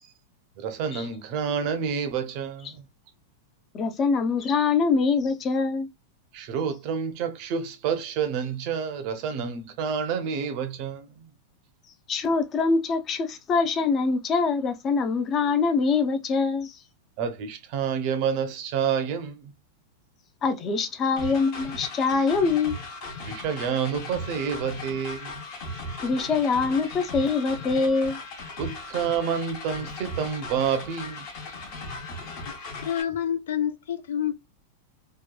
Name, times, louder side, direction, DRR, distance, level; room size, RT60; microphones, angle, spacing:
voice 1, 0.6-2.9 6.3-11.3 17.2-19.5 23.2-25.4 28.6-31.3, right 7 dB, 45° right, 0.5 m, -29 dB
voice 2, 3.7-5.9 12.1-16.8 20.4-22.8 26.0-28.2, left 4 dB, 25° left, 0.4 m, -24 dB
sound 1, 21.2-33.0, left 2 dB, 45° left, 1.0 m, -37 dB
voice 3, 32.4-34.3, left 9 dB, 85° left, 0.4 m, -28 dB
2.8 x 2.2 x 2.2 m
supercardioid pair, 155°, 0 cm